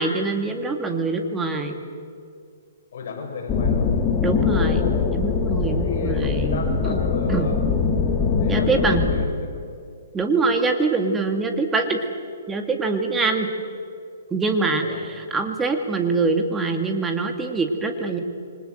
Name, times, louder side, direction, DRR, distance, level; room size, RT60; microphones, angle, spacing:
voice 1, 0.0-1.8 4.2-7.0 7.3-7.5 8.5-9.0 10.1-12.0 12.5-13.5 14.3-18.2, right 3 dB, 10° right, 5 dB, 2.3 m, -24 dB
voice 2, 2.9-3.9 5.7-7.6 8.4-9.7 14.8-15.0, left 4 dB, 60° left, 2 dB, 6.5 m, -33 dB
sound 1, 3.5-9.2, left 5 dB, 20° left, 2.1 m, -22 dB
28.0 x 25.0 x 8.0 m, 2.3 s
hypercardioid pair, 160°, 0 cm